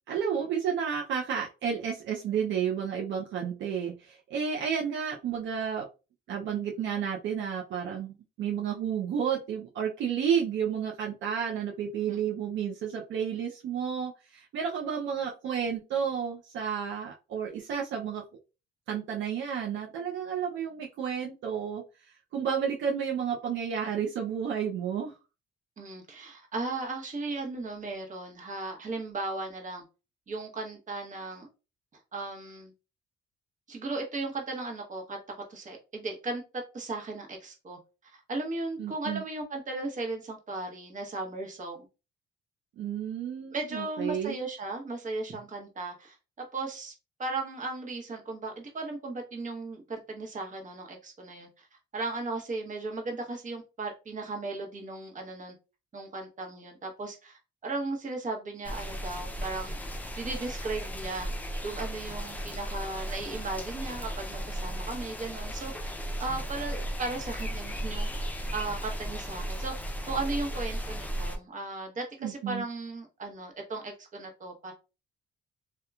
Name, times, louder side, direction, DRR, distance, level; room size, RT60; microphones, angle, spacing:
voice 1, 0.1-5.9 6.3-18.2 18.9-21.8 22.3-25.1 38.8-39.2 42.8-44.4 72.2-72.6, right 7 dB, 70° right, 0 dB, 0.5 m, -31 dB
voice 2, 25.8-29.8 30.3-31.5 32.1-32.7 33.7-35.2 35.5-41.9 43.5-46.9 47.2-51.7 51.9-55.5 55.9-59.8 60.2-61.3 61.6-69.7 70.0-74.7, right 3 dB, 40° right, 2 dB, 0.9 m, -36 dB
sound 1, 58.6-71.4, equal, 10° left, 0.5 m, -35 dB
2.8 x 2.2 x 2.3 m, 0.30 s
cardioid pair, 90°, 20 cm